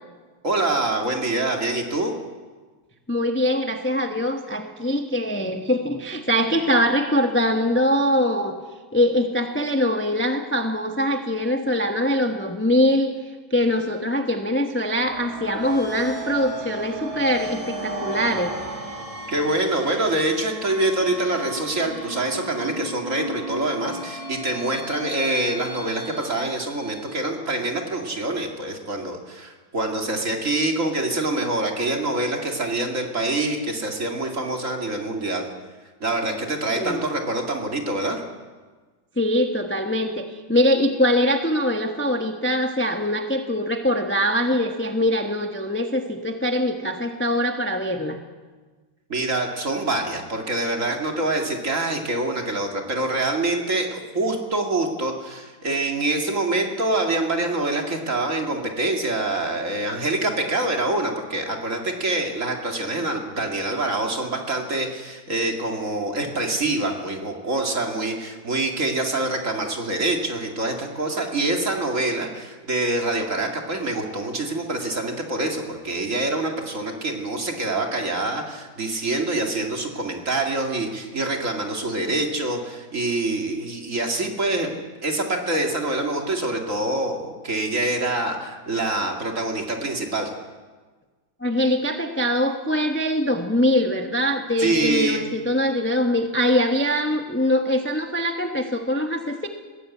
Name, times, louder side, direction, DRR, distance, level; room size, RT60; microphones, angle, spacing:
voice 1, 0.4-2.1 19.3-35.5 36.0-38.2 49.1-90.3 94.6-95.3, right 2 dB, 40° right, 2 dB, 2.8 m, -25 dB
voice 2, 3.1-8.6 8.9-13.1 13.5-18.6 36.7-37.1 39.2-48.2 91.4-99.5, left 1 dB, 10° left, 4 dB, 1.0 m, -23 dB
sound 1, 14.9-27.5, right 1 dB, 15° right, 2.5 m, -35 dB
21.0 x 16.5 x 8.6 m, 1.4 s
omnidirectional pair, 2.1 m